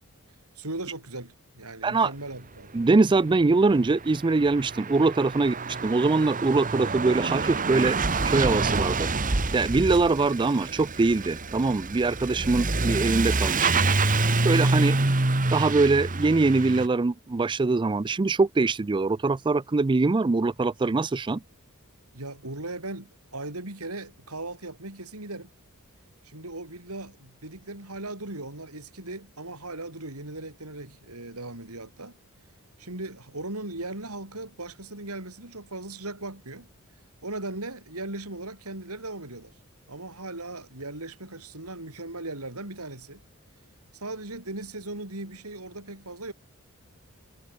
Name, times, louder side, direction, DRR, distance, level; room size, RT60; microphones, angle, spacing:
voice 1, 0.5-2.7 22.1-25.5 26.2-32.2 32.8-36.7 37.2-39.5 39.9-43.2 43.9-46.3, right 2 dB, 75° right, 6.6 m, -38 dB
voice 2, 2.7-8.0 8.2-9.1 9.5-13.8 14.4-15.0 15.5-21.4, right 3 dB, 20° right, 0.4 m, -23 dB
Truck / Accelerating revving vroom, 3.2-3.3 3.5-16.9, right 3 dB, 35° right, 1.6 m, -27 dB
head